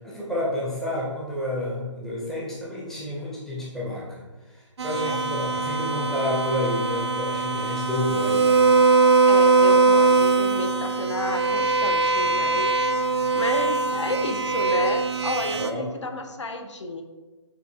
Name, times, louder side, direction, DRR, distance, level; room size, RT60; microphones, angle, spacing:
voice 1, 0.0-4.2 4.5-9.0 15.5-15.9, left 1 dB, 5° left, -6 dB, 0.5 m, -30 dB
sound 1, 4.8-15.7, right 4 dB, 60° right, 0.5 m, -21 dB
voice 2, 9.3-17.0, left 2 dB, 70° left, 6 dB, 0.6 m, -32 dB
6.4 x 2.6 x 2.6 m, 1.2 s
figure-of-eight pair, 140°, 16 cm